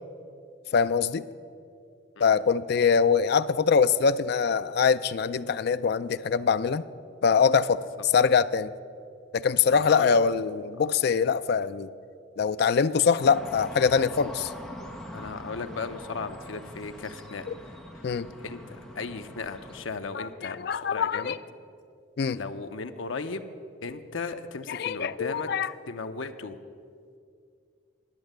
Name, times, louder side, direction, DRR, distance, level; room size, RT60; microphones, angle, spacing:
voice 1, 0.7-1.2 2.2-6.8 7.2-8.7 9.3-11.9 12.4-14.5 18.0-18.3 20.1-21.4 22.2-22.4 24.7-25.7, left 6 dB, 55° left, 14 dB, 0.4 m, -23 dB
voice 2, 9.7-10.2 15.1-17.7 18.0-18.2 18.4-21.3 22.3-23.4 23.8-25.5 25.9-26.6, left 4 dB, 75° left, 8 dB, 0.7 m, -36 dB
sound 1, 13.2-19.9, equal, ahead, 1.2 m, -43 dB
10.5 x 8.1 x 7.8 m, 2.3 s
head